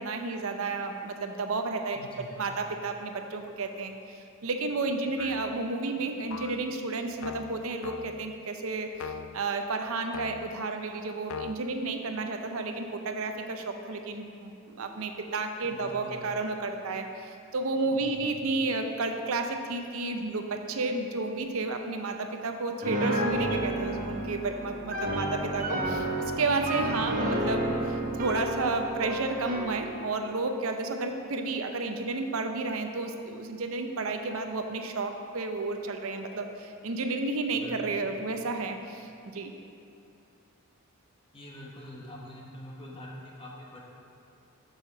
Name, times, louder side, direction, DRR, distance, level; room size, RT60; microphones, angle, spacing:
voice 1, 0.0-26.0 26.4-39.5, right 3 dB, 70° right, 5 dB, 0.6 m, -32 dB
voice 2, 1.9-2.4 15.6-16.2 17.9-18.3 25.5-25.7 26.9-27.1 37.5-38.1 41.3-43.8, equal, 25° left, -2 dB, 1.1 m, -45 dB
sound 1, 5.2-5.6 6.3-6.7 7.2-8.4 8.9-9.5 10.1-10.6 11.3-11.5, left 6 dB, 75° left, 0.3 m, -40 dB
Piano, 22.8-29.8, right 1 dB, 40° right, 1.0 m, -31 dB
6.9 x 5.7 x 5.8 m, 2.6 s
head